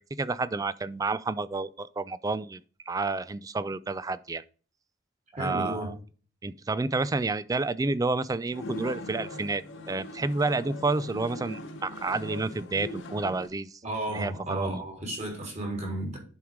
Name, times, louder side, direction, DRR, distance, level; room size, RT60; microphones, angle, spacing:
voice 1, 0.2-2.6 2.9-4.4 5.4-5.9 6.4-13.7 14.1-14.8, right 3 dB, 20° right, 0.3 m, -30 dB
voice 2, 5.3-5.9 13.8-16.2, right 1 dB, 35° right, 3.3 m, -33 dB
sound 1, 8.5-13.5, left 1 dB, 70° left, 1.1 m, -40 dB
10.5 x 4.7 x 3.6 m
head